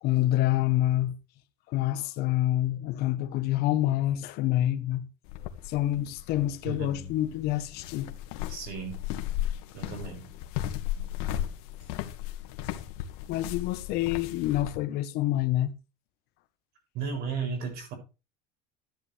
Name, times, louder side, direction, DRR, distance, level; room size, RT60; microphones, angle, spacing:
voice 1, 0.0-1.1 1.7-5.1 5.6-8.1 13.3-15.7, left 14 dB, 50° left, 1.4 m, -27 dB
sound 1, 5.3-14.8, left 12 dB, 75° left, 2.1 m, -36 dB
voice 2, 6.6-7.1 8.5-9.0 9.7-10.3 16.9-17.9, right 6 dB, 50° right, 7.6 m, -34 dB
15.0 x 10.0 x 3.6 m
cardioid pair, 155°, 20 cm